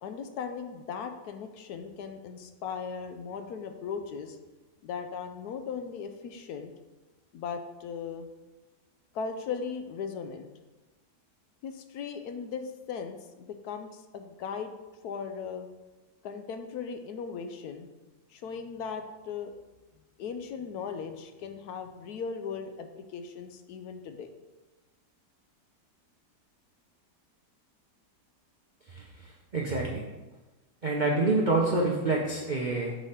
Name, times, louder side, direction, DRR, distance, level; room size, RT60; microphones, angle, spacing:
voice 1, 0.0-4.4 4.8-6.7 7.3-8.3 9.1-10.5 11.6-14.7 15.0-15.7 16.2-17.9 18.3-19.5 20.2-24.3, left 6 dB, 70° left, 7 dB, 1.0 m, -38 dB
voice 2, 28.9-30.0 30.8-32.9, right 2 dB, 80° right, -2 dB, 0.4 m, -27 dB
6.2 x 3.3 x 5.6 m, 1.1 s
omnidirectional pair, 1.8 m